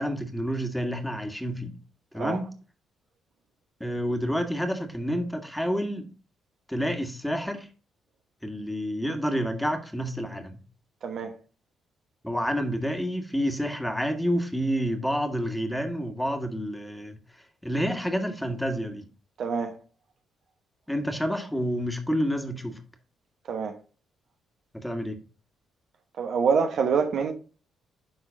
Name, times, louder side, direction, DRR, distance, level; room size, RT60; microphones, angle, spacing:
voice 1, 0.0-1.7 2.1-2.5 3.8-6.1 6.7-7.7 8.4-10.6 12.2-17.2 17.6-19.0 20.9-22.8 24.7-25.2, equal, 5° left, 1.9 m, -29 dB
voice 2, 11.0-11.3 19.4-19.7 23.5-23.8 26.2-27.3, right 6 dB, 60° right, 1.0 m, -25 dB
11.0 x 3.8 x 3.8 m
hypercardioid pair, 50°, 0 cm